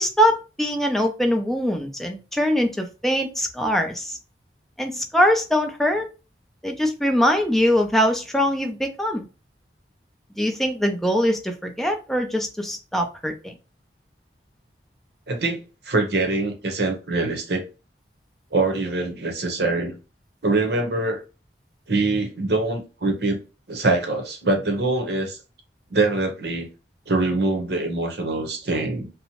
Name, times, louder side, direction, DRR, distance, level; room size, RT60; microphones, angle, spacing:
voice 1, 0.0-4.2 4.8-6.1 6.6-9.3 10.4-13.5, equal, ahead, 0.4 m, -22 dB
voice 2, 15.3-17.6 18.5-20.0 20.4-21.2 21.9-23.4 23.7-25.4 25.9-26.7 27.1-29.1, right 2 dB, 70° right, 0.8 m, -24 dB
2.8 x 2.1 x 2.9 m
head